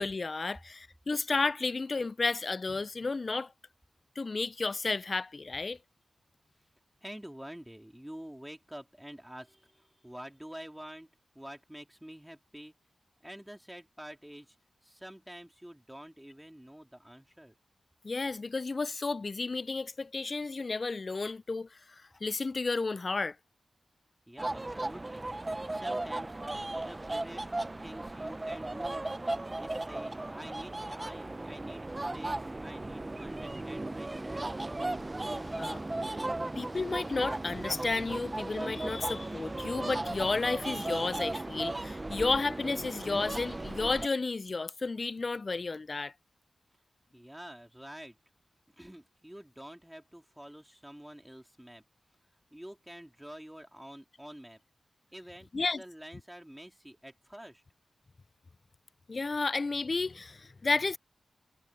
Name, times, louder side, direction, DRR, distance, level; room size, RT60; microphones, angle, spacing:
voice 1, 0.0-3.5 4.2-5.8 18.0-23.4 35.3-35.8 36.6-46.1 55.5-55.8 59.1-61.0, left 3 dB, 50° left, 0.3 m, -32 dB
voice 2, 7.0-11.1 11.3-12.7 13.2-14.6 14.8-17.5 24.3-26.4 26.7-27.5 27.8-29.1 29.5-34.5 47.1-48.2 48.8-51.8 52.5-54.6 55.1-57.6, equal, 5° right, 3.7 m, -48 dB
sound 1, 24.4-44.1, right 2 dB, 30° right, 0.6 m, -36 dB
cardioid pair, 45°, 0 cm